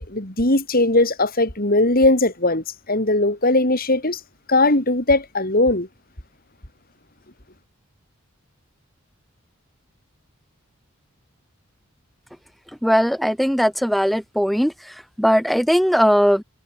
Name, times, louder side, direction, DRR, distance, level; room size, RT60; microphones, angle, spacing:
voice 1, 0.0-4.2 4.5-5.9, left 2 dB, 45° left, 5.2 m, -19 dB
voice 2, 12.8-16.4, equal, ahead, 6.4 m, -19 dB
head